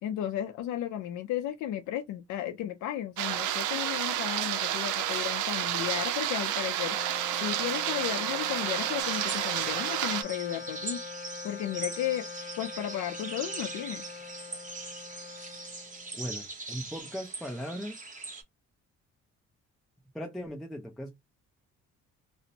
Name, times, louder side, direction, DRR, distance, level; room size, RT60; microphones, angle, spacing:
voice 1, 0.0-7.1 7.4-11.0 11.4-12.2 12.6-14.1, left 11 dB, 80° left, 0.5 m, -34 dB
sound 1, 3.2-10.2, right 11 dB, 80° right, 0.5 m, -30 dB
Wind instrument woodwind instrument, 6.8-16.4, left 6 dB, 40° left, 0.7 m, -43 dB
sound 2, 9.0-18.4, right 3 dB, 25° right, 0.9 m, -41 dB
voice 2, 16.1-18.0 20.1-21.2, equal, ahead, 0.5 m, -38 dB
2.5 x 2.0 x 2.6 m
cardioid pair, 90°, 30 cm